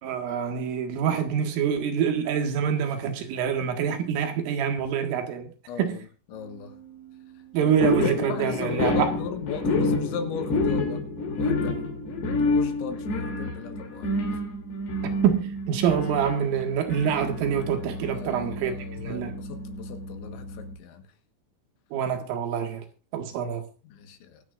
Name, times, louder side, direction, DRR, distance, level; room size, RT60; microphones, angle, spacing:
voice 1, 0.0-5.5 5.8-6.0 7.5-9.1 15.2-19.3 21.9-22.8 23.1-23.6, right 8 dB, 85° right, 4.3 m, -26 dB
voice 2, 5.7-6.8 7.6-7.7 8.2-12.0 12.3-14.4 18.1-21.1 23.8-24.4, left 7 dB, 75° left, 3.8 m, -37 dB
sound 1, 7.8-20.8, left 2 dB, 55° left, 4.9 m, -29 dB
24.0 x 9.2 x 2.5 m
omnidirectional pair, 5.6 m